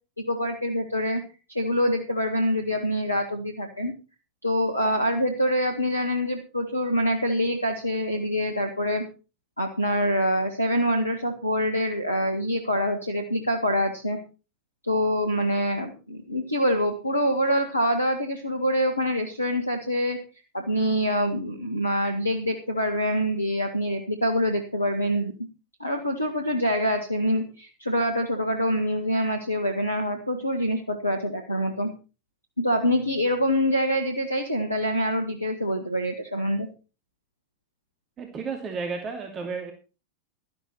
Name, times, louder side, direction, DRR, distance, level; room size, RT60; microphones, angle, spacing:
voice 1, 0.2-1.2 1.5-3.9 4.4-9.0 9.6-14.2 14.8-20.2 20.5-25.3 25.8-31.9 32.6-36.7, equal, 85° left, 5 dB, 1.6 m, -25 dB
voice 2, 38.2-39.7, right 5 dB, 25° right, 3 dB, 2.6 m, -32 dB
13.0 x 11.5 x 4.3 m, 0.33 s
figure-of-eight pair, 90°, 0 cm